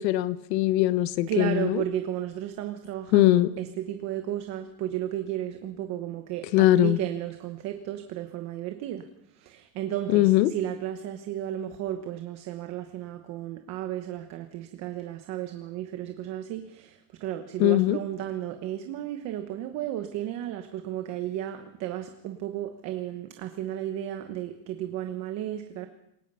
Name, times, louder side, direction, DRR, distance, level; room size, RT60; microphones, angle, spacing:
voice 1, 0.0-1.8 3.1-3.5 6.5-7.0 10.1-10.5 17.6-18.0, left 15 dB, 80° left, 14 dB, 1.4 m, -21 dB
voice 2, 1.3-9.1 9.3-25.9, right 12 dB, 35° right, 7 dB, 1.1 m, -33 dB
27.5 x 17.5 x 5.6 m, 0.80 s
supercardioid pair, 175°, 49 cm